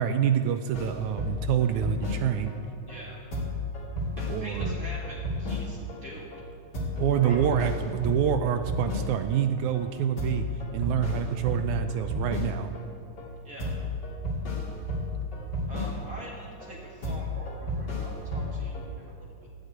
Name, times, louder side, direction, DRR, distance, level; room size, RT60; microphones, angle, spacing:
voice 1, 0.0-2.5 4.3-4.7 7.0-10.5 10.7-12.7, right 9 dB, 80° right, 8 dB, 1.8 m, -26 dB
sound 1, 0.7-2.6 2.9-3.0 3.3-6.0 6.3-6.4 6.7-9.4 9.7-9.9 10.2-12.9 13.2-13.3 13.6-16.3 16.6-16.7 17.0-18.9, left 2 dB, 35° left, 2.9 m, -32 dB
voice 2, 2.9-3.2 4.2-6.3 7.2-7.4 13.4-13.7 15.7-19.5, equal, 30° right, -3 dB, 2.0 m, -44 dB
12.5 x 8.1 x 9.3 m, 2.2 s
omnidirectional pair, 3.8 m